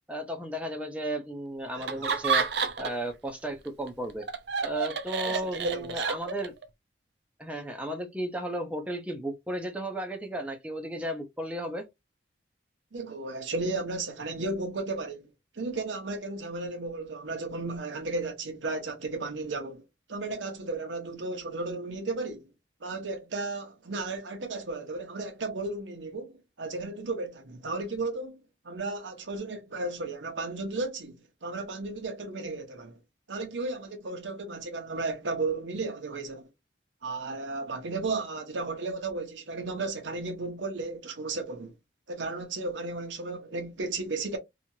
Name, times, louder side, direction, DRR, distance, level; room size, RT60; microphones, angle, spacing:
voice 1, 0.1-2.5 2.8-4.2 4.6-6.5 7.4-11.8, right 1 dB, 5° right, 0.5 m, -34 dB
Laughter, 1.8-3.1 3.4-6.6, right 6 dB, 65° right, 0.5 m, -30 dB
voice 2, 5.2-6.0 12.9-15.3 15.6-19.8 20.1-22.5 22.8-28.4 28.6-33.0 33.3-36.5 37.0-41.7 42.1-44.4, right 3 dB, 85° right, 0.8 m, -34 dB
2.9 x 2.4 x 2.7 m
head